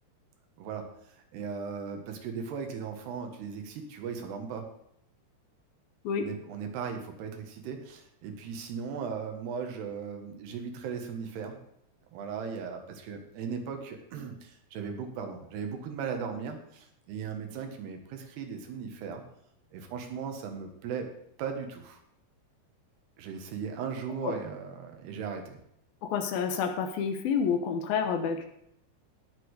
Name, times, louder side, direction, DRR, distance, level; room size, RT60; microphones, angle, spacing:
voice 1, 1.3-4.7 6.2-11.6 12.1-19.2 19.7-21.1 21.4-22.0 23.2-25.6, right 6 dB, 80° right, 5 dB, 3.6 m, -37 dB
voice 2, 26.0-28.5, left 6 dB, 70° left, 6 dB, 2.8 m, -29 dB
18.0 x 6.9 x 4.9 m, 0.75 s
omnidirectional pair, 4.7 m